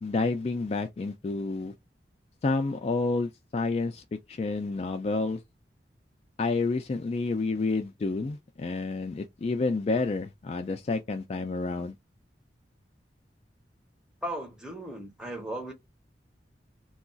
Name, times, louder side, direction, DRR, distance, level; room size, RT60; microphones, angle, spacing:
voice 1, 0.0-1.7 2.4-5.4 6.4-11.9, left 3 dB, 35° left, 0.3 m, -29 dB
voice 2, 14.2-15.7, right 1 dB, 5° right, 0.8 m, -36 dB
2.3 x 2.3 x 3.8 m
head